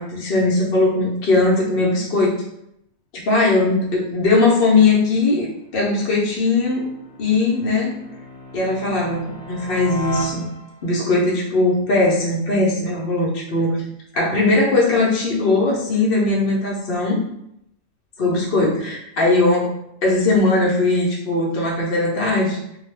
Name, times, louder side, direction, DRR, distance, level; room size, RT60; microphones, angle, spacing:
voice 1, 0.0-2.4 3.1-6.9 7.2-8.0 8.5-10.5 10.8-13.8 14.1-17.2 18.2-19.7 20.0-22.6, left 2 dB, 55° left, -4 dB, 0.8 m, -19 dB
sound 1, 4.7-11.0, equal, 30° left, 0.9 m, -37 dB
2.3 x 2.3 x 3.2 m, 0.78 s
omnidirectional pair, 1.4 m